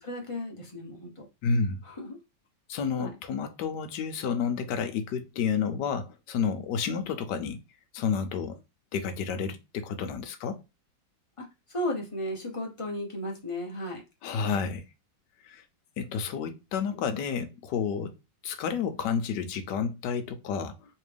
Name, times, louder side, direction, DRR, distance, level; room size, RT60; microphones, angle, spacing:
voice 1, 0.0-1.3 1.8-2.2 3.0-3.1 6.9-7.0 11.4-11.5 11.7-14.0, left 1 dB, 30° left, 0.6 m, -35 dB
voice 2, 1.4-1.8 2.7-7.6 7.9-8.6 8.9-10.6 14.2-14.8 15.4-15.6 16.0-18.1 18.4-20.7, left 6 dB, 70° left, 1.2 m, -30 dB
3.3 x 3.3 x 3.3 m
omnidirectional pair, 2.1 m